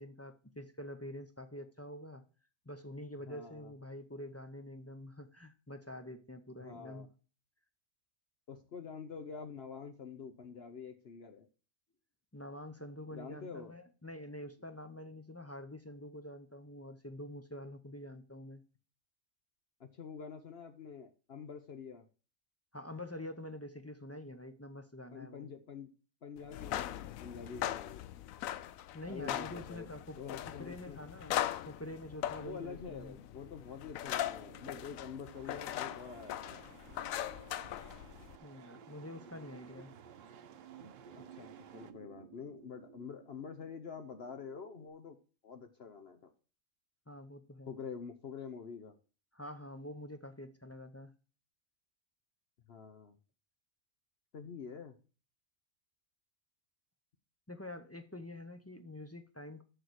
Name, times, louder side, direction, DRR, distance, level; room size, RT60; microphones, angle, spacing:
voice 1, 0.0-2.2 2.7-7.1 12.3-18.6 22.7-25.5 28.9-30.2 30.5-33.1 38.4-39.9 47.1-47.7 49.3-51.1 57.5-59.6, left 1 dB, 15° left, 0.5 m, -47 dB
voice 2, 3.2-3.7 6.6-7.1 8.5-11.5 13.1-13.7 19.8-22.0 25.1-25.9 26.2-28.0 29.1-29.9 30.2-31.0 32.4-36.7 41.3-45.2 45.4-46.3 47.7-48.9 52.7-53.2 54.3-55.0, left 6 dB, 55° left, 1.0 m, -47 dB
sound 1, 26.5-38.4, left 12 dB, 80° left, 1.0 m, -40 dB
sound 2, 34.2-44.9, right 7 dB, 45° right, 0.8 m, -57 dB
sound 3, 35.3-41.9, right 9 dB, 70° right, 1.0 m, -58 dB
6.8 x 6.5 x 6.2 m
omnidirectional pair, 1.4 m